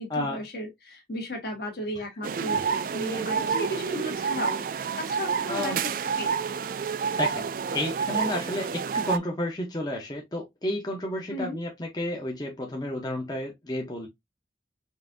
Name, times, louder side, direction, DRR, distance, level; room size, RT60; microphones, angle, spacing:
voice 1, 0.0-4.6 5.0-5.8 6.2-6.3 11.3-11.6, equal, 60° left, 1.6 m, -35 dB
sound 1, 2.2-9.2, right 6 dB, 50° right, 0.3 m, -29 dB
voice 2, 5.5-5.8 7.2-14.1, left 1 dB, 20° left, 0.7 m, -31 dB
5.4 x 2.6 x 2.5 m
head